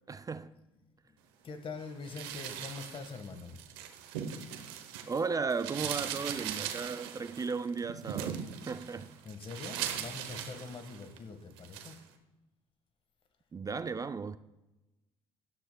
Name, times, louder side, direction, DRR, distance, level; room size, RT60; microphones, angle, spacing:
voice 1, 0.1-0.5 5.1-9.1 13.5-14.4, right 5 dB, 30° right, 0.4 m, -35 dB
voice 2, 1.4-3.6 9.2-12.0, left 4 dB, 45° left, 1.6 m, -43 dB
sound 1, 2.0-5.2 5.5-11.2 11.6-12.0, right 9 dB, 85° right, 1.0 m, -40 dB
16.5 x 12.0 x 2.3 m
hypercardioid pair, 60°, 13 cm